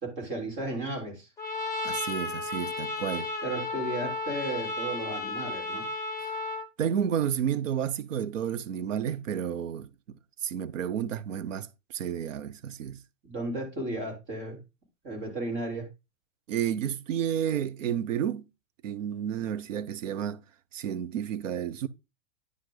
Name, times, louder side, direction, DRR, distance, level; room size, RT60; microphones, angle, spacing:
voice 1, 0.0-1.3 3.4-5.8 13.2-14.6 15.0-15.9, right 2 dB, 30° right, 3.6 m, -34 dB
Trumpet, 1.4-6.7, left 2 dB, 10° left, 1.8 m, -33 dB
voice 2, 1.8-3.3 6.8-13.0 16.5-18.5 18.8-20.4 20.7-21.9, right 9 dB, 90° right, 0.9 m, -31 dB
9.7 x 5.2 x 3.9 m
supercardioid pair, 145°, 37 cm